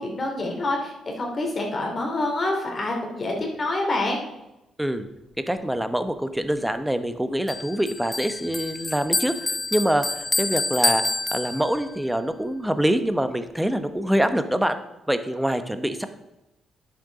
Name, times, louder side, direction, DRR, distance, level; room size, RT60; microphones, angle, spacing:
voice 1, 0.0-4.2, left 2 dB, 35° left, 1 dB, 2.7 m, -27 dB
voice 2, 5.4-9.3 9.7-11.0 11.3-14.8 15.1-16.1, equal, 5° right, 9 dB, 0.9 m, -25 dB
Bell, 7.5-12.0, left 2 dB, 20° left, 0.4 m, -27 dB
10.0 x 6.8 x 5.0 m, 0.92 s
cardioid pair, 90°, 0 cm